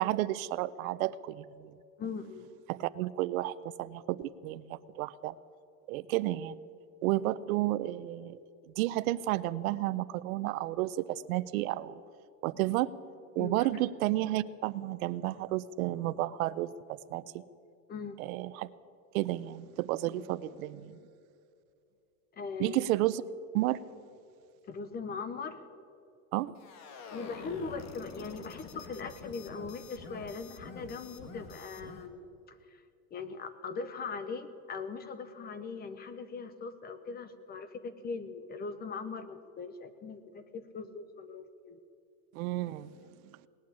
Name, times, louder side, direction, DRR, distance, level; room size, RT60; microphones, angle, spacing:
voice 1, 0.0-1.7 2.7-5.3 5.9-6.6 7.0-8.4 8.8-12.0 12.4-12.9 13.4-17.4 18.2-18.7 19.1-21.0 22.6-23.2 23.5-23.8 26.3-26.5 42.3-42.9, right 16 dB, 75° right, 16 dB, 0.7 m, -32 dB
voice 2, 2.0-2.5 13.4-13.7 17.9-18.2 22.3-22.8 24.6-25.6 27.1-32.2 32.5-32.8 33.1-41.8, left 4 dB, 20° left, 12 dB, 0.8 m, -40 dB
sound 1, 26.6-32.1, left 4 dB, 40° left, 1.6 m, -47 dB
19.0 x 8.9 x 8.6 m, 2.5 s
supercardioid pair, 145°, 42 cm